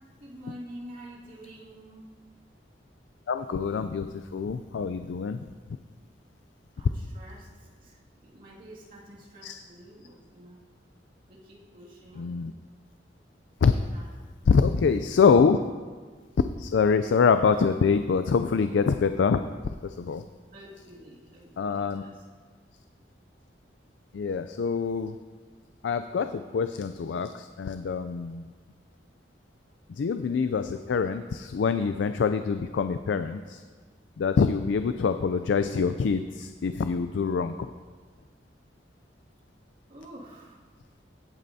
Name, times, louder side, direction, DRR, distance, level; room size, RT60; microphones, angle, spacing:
voice 1, 0.2-2.1 6.7-10.6 11.3-12.3 13.7-14.3 20.5-22.3 39.9-40.6, equal, 50° right, -5 dB, 2.2 m, -48 dB
voice 2, 3.3-5.4 9.4-9.6 12.2-12.5 13.6-13.7 14.5-15.6 16.6-19.4 19.8-20.2 21.6-22.0 24.1-25.1 25.8-28.5 29.9-33.6 34.2-37.7, left 5 dB, 80° left, 10 dB, 0.4 m, -25 dB
16.5 x 8.6 x 2.7 m, 1.5 s
head